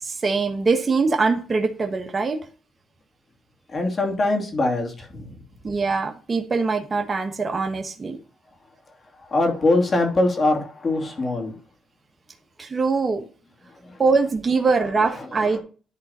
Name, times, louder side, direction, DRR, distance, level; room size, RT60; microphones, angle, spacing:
voice 1, 0.0-2.4 5.6-8.2 12.6-13.2 14.0-15.6, right 4 dB, 30° right, 1.3 m, -22 dB
voice 2, 3.7-5.4 9.1-11.6 13.7-14.0 14.8-15.6, left 2 dB, 40° left, 2.7 m, -23 dB
11.0 x 3.9 x 4.2 m
cardioid pair, 90°, 0 cm